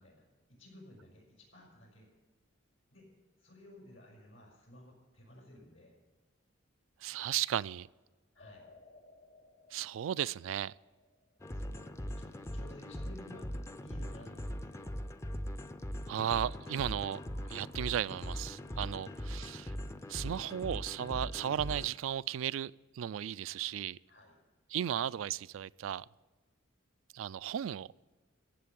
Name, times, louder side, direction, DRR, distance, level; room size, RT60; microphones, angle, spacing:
voice 1, 0.0-2.1 2.9-3.1 3.4-5.9 8.3-8.7 11.5-15.0 19.0-19.2 24.1-24.4, left 1 dB, 80° left, 5.9 m, -55 dB
voice 2, 7.0-7.9 9.7-10.7 16.1-17.2 17.5-19.7 20.1-24.0 24.7-26.1 27.1-27.9, right 10 dB, 80° right, 0.3 m, -35 dB
sound 1, 8.4-11.6 16.4-19.2, left 3 dB, 60° left, 3.9 m, -61 dB
sound 2, 11.4-21.9, equal, 15° left, 0.5 m, -41 dB
15.5 x 7.6 x 8.7 m
head